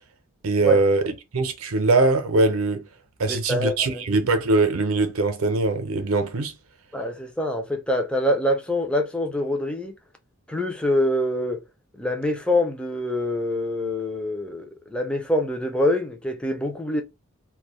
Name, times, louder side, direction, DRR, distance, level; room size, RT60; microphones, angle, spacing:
voice 1, 0.4-2.8 3.2-6.5, right 3 dB, 80° right, 0.5 m, -22 dB
voice 2, 3.3-4.0 6.9-9.9 10.5-11.6 11.9-17.0, left 1 dB, 5° left, 0.3 m, -25 dB
2.2 x 2.0 x 2.9 m
head